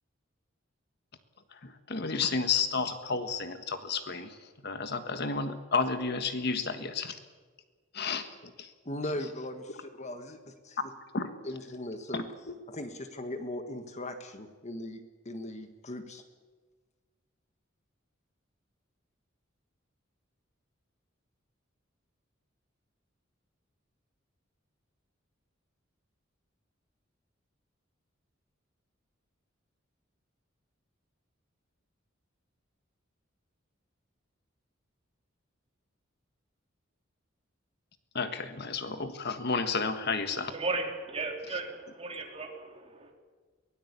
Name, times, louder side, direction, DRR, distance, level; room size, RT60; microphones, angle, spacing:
voice 1, 1.5-4.4 4.6-7.2 7.9-8.7 11.1-11.3 12.1-12.2 38.1-40.5, left 4 dB, 55° left, 9 dB, 1.5 m, -31 dB
voice 2, 8.8-10.9 11.4-12.2 12.7-16.2, left 1 dB, 35° left, 7 dB, 1.6 m, -39 dB
voice 3, 40.3-43.1, right 3 dB, 30° right, 2 dB, 3.6 m, -36 dB
23.5 x 18.0 x 8.3 m, 1.4 s
head